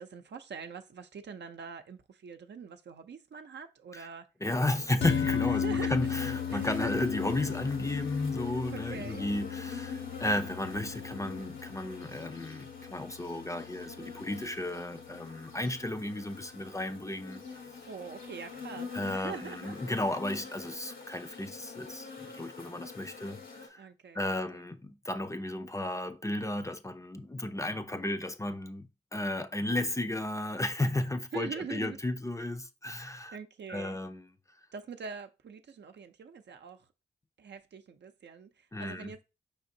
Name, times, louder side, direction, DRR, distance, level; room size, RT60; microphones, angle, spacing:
voice 1, 0.0-4.3 5.4-6.0 6.5-6.9 8.7-9.2 17.8-19.8 23.8-24.2 24.5-24.6 31.3-32.0 33.3-34.0 34.7-36.8 37.4-39.2, right 5 dB, 60° right, 0.6 m, -43 dB
voice 2, 4.4-17.4 18.9-23.9 24.1-33.4 33.7-34.3 38.7-39.1, left 1 dB, 15° left, 0.5 m, -34 dB
sound 1, 4.5-23.7, left 5 dB, 85° left, 1.3 m, -46 dB
sound 2, 5.0-15.5, left 8 dB, 65° left, 0.6 m, -36 dB
5.0 x 3.5 x 2.7 m
cardioid pair, 45°, 20 cm